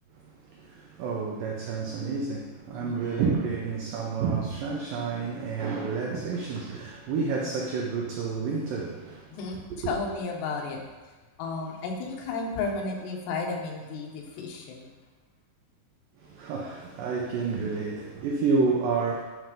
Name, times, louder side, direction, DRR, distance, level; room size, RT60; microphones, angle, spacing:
voice 1, 0.2-9.4 9.8-9.9 16.2-19.2, right 4 dB, 85° right, 1.9 m, -29 dB
voice 2, 2.7-3.1 9.3-10.8 11.4-14.9, left 4 dB, 80° left, 3.1 m, -33 dB
9.5 x 4.4 x 5.2 m
omnidirectional pair, 4.9 m